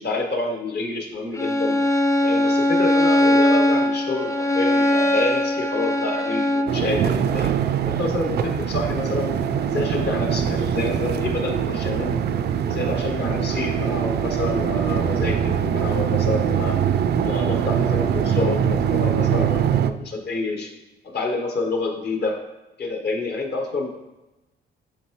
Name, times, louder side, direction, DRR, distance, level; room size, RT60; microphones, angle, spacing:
voice 1, 0.0-1.8 2.2-7.5 7.9-9.3 9.6-12.2 12.6-16.8 17.2-20.7 21.0-22.4 22.8-23.9, left 2 dB, 55° left, 2 dB, 1.3 m, -28 dB
Bowed string instrument, 1.4-6.8, left 1 dB, 15° left, 0.5 m, -20 dB
sound 1, 6.7-19.9, right 8 dB, 55° right, 0.4 m, -23 dB
9.5 x 3.4 x 3.1 m, 0.99 s
cardioid pair, 90°, 20 cm